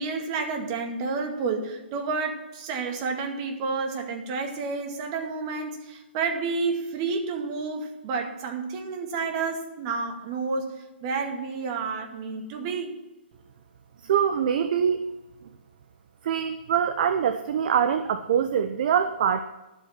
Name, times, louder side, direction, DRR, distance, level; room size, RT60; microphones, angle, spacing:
voice 1, 0.0-13.0, right 4 dB, 35° right, 3 dB, 2.1 m, -30 dB
voice 2, 14.0-15.0 16.2-19.4, right 8 dB, 50° right, 9 dB, 0.7 m, -24 dB
12.0 x 8.2 x 5.8 m, 1.1 s
figure-of-eight pair, 130°, 6 cm